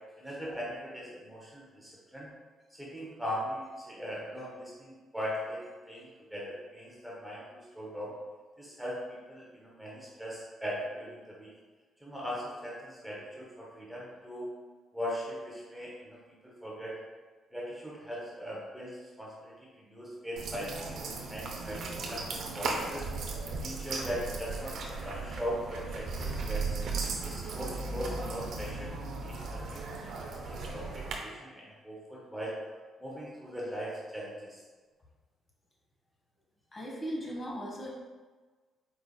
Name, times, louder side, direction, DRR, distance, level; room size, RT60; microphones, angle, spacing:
voice 1, 0.2-2.3 2.7-8.1 8.6-9.0 9.3-11.5 12.0-14.5 14.9-17.0 17.5-19.5 19.9-23.0 23.6-26.8 27.2-28.9 29.2-29.9 30.2-32.6 33.0-34.6, equal, 5° right, -5 dB, 0.8 m, -40 dB
sound 1, 20.4-31.1, right 3 dB, 65° right, 0.6 m, -36 dB
voice 2, 36.7-37.9, equal, 30° left, -3 dB, 1.2 m, -37 dB
4.6 x 3.8 x 2.2 m, 1.4 s
cardioid pair, 90°, 0 cm